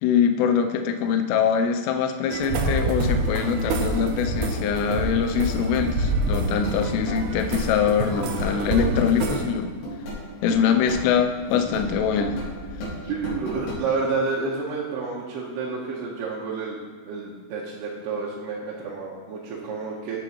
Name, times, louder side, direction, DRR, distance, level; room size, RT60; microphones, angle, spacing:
voice 1, 0.0-9.7 10.4-12.4, left 7 dB, 85° left, 6 dB, 2.4 m, -23 dB
sound 1, 2.3-9.4, right 2 dB, 90° right, 2.2 m, -27 dB
sound 2, 3.5-13.8, equal, 70° left, 4.9 m, -35 dB
voice 2, 13.0-16.8 17.0-20.2, right 4 dB, 75° right, -6 dB, 2.8 m, -29 dB
15.0 x 6.0 x 3.1 m, 1.5 s
omnidirectional pair, 5.5 m